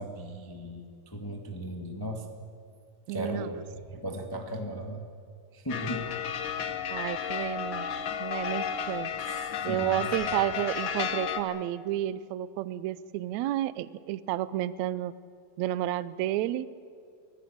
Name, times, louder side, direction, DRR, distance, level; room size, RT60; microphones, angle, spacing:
voice 1, 0.0-2.4 3.1-5.1 5.5-6.1 9.3-10.0, equal, 20° left, 3 dB, 0.5 m, -37 dB
voice 2, 3.1-3.5 6.9-7.9 8.2-9.1 9.6-15.1 15.6-16.7, right 13 dB, 90° right, 16 dB, 1.6 m, -31 dB
sound 1, 5.7-11.4, left 8 dB, 75° left, 1.1 m, -33 dB
24.5 x 16.5 x 8.6 m, 2.3 s
omnidirectional pair, 4.0 m